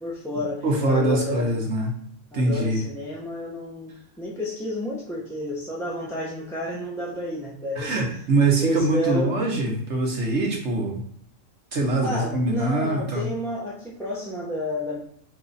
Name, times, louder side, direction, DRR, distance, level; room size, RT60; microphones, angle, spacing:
voice 1, 0.0-1.6 2.3-8.2 8.6-9.4 12.0-15.0, left 1 dB, 5° left, -5 dB, 0.5 m, -31 dB
voice 2, 0.6-1.9 2.3-2.8 7.8-11.0 11.7-13.3, right 2 dB, 65° right, 0 dB, 1.2 m, -23 dB
4.8 x 2.3 x 4.0 m, 0.66 s
omnidirectional pair, 1.3 m